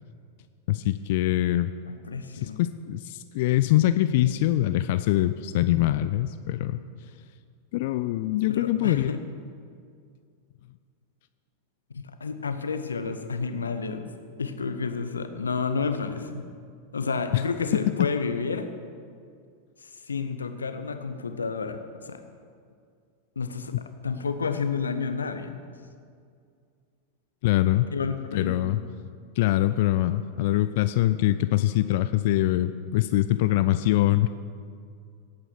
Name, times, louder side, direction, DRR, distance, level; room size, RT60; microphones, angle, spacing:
voice 1, 0.7-1.7 2.3-6.8 7.7-9.1 17.3-17.4 17.9-18.0 27.4-27.9 28.3-28.8 29.4-34.3, left 14 dB, 50° left, 12 dB, 0.4 m, -23 dB
voice 2, 1.9-2.6 8.5-9.2 11.9-14.1 14.4-16.4 16.9-18.7 19.8-22.2 23.4-23.7 24.0-25.7 27.9-28.6, left 5 dB, 75° left, 8 dB, 1.0 m, -30 dB
18.0 x 8.8 x 6.1 m, 2.2 s
figure-of-eight pair, 90°, 0 cm